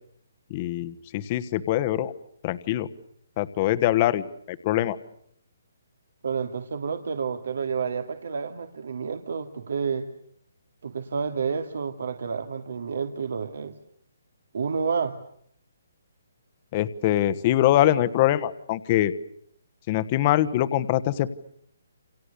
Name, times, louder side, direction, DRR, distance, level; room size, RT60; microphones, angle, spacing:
voice 1, 0.5-2.1 2.4-2.9 3.4-5.0 16.7-19.1 19.9-21.3, left 13 dB, 25° left, 13 dB, 1.3 m, -23 dB
voice 2, 6.2-10.1 10.8-13.7 14.5-15.2, right 5 dB, 65° right, 7 dB, 2.4 m, -29 dB
29.0 x 28.0 x 6.9 m, 0.69 s
hypercardioid pair, 170°, 0 cm